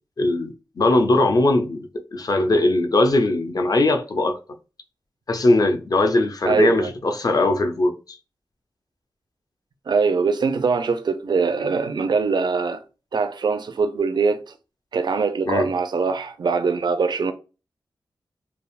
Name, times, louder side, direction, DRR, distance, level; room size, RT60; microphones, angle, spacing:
voice 1, 0.2-4.4 5.3-8.2 15.5-15.7, left 2 dB, 50° left, 0.5 m, -20 dB
voice 2, 6.5-6.9 9.9-12.8 13.1-14.4 14.9-17.3, right 4 dB, 65° right, 0.4 m, -22 dB
3.3 x 2.0 x 2.4 m
cardioid pair, 65°, 8 cm